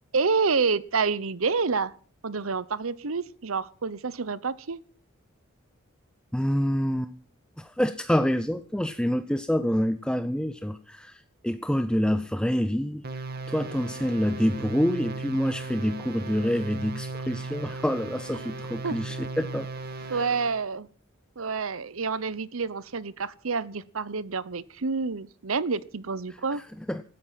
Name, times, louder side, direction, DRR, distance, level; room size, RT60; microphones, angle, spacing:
voice 1, 0.1-1.9 2.2-4.8 18.8-19.0 20.1-20.9 21.4-26.6, right 4 dB, 75° right, 18 dB, 0.9 m, -28 dB
voice 2, 6.3-7.1 7.6-13.2 13.5-19.7 20.0-20.3 26.5-27.0, equal, 5° left, 10 dB, 0.6 m, -27 dB
sound 1, 13.0-20.6, right 3 dB, 50° right, 1.8 m, -37 dB
17.0 x 13.5 x 5.8 m, 0.44 s
head